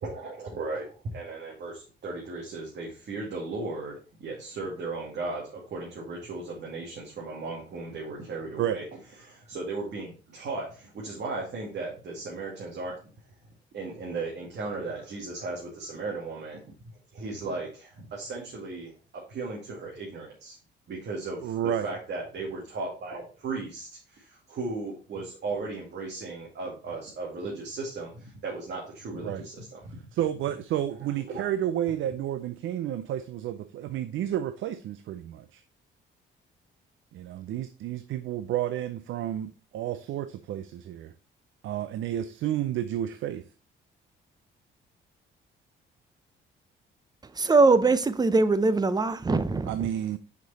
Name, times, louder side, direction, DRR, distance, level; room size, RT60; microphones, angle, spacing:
voice 1, 0.0-8.8 9.2-12.9 13.7-16.6 17.1-18.9 19.3-20.6 20.9-21.5 21.8-30.0 31.3-31.5, right 3 dB, 60° right, 2.3 m, -36 dB
voice 2, 21.4-21.9 29.2-29.5 30.1-35.6 37.1-41.1 41.6-43.4 49.7-50.2, right 11 dB, 75° right, 0.5 m, -31 dB
voice 3, 47.3-49.9, right 3 dB, 20° right, 0.7 m, -22 dB
6.5 x 5.3 x 4.2 m
cardioid pair, 90°, 20 cm